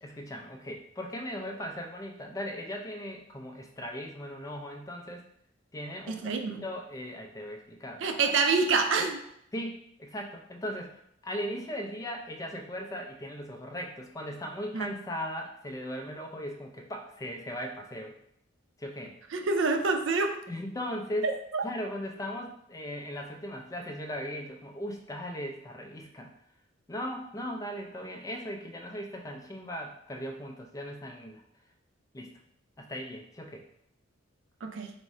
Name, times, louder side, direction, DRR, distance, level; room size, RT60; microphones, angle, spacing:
voice 1, 0.0-5.2 5.7-8.0 9.5-18.2 18.8-19.1 20.5-21.3 21.6-26.3 26.9-31.4 32.1-32.3 32.8-33.6, equal, 20° left, 2 dB, 0.4 m, -38 dB
voice 2, 6.1-6.6 8.0-9.2 14.7-14.9 19.3-20.4 21.2-21.6 34.6-34.9, right 4 dB, 75° right, 6 dB, 0.4 m, -27 dB
3.6 x 2.1 x 4.2 m, 0.73 s
head